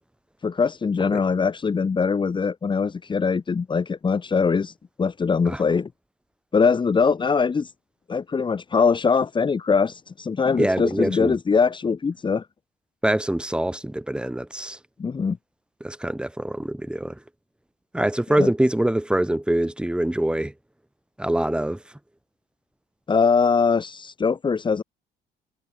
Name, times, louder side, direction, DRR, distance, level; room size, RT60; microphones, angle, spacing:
voice 1, 0.4-4.7 5.0-5.9 6.5-7.7 8.1-12.5 15.0-15.4 18.4-18.5 23.1-24.8, left 5 dB, 30° left, 2.5 m, -22 dB
voice 2, 10.6-11.4 13.0-14.8 15.8-17.2 17.9-20.5 21.2-21.8, right 1 dB, 5° right, 7.9 m, -24 dB
cardioid pair, 110°, 17 cm